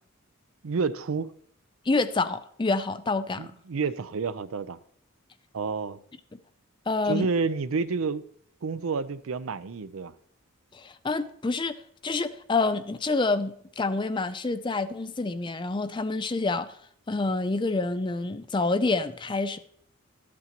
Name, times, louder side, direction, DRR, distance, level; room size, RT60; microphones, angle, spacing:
voice 1, 0.6-1.3 3.4-4.8 5.5-6.0 7.1-8.2 8.6-10.1, right 4 dB, 90° right, 0.5 m, -29 dB
voice 2, 1.9-3.5 6.9-7.3 10.7-11.8 12.0-16.8 17.1-19.6, left 3 dB, 25° left, 0.5 m, -27 dB
12.5 x 8.3 x 2.9 m
head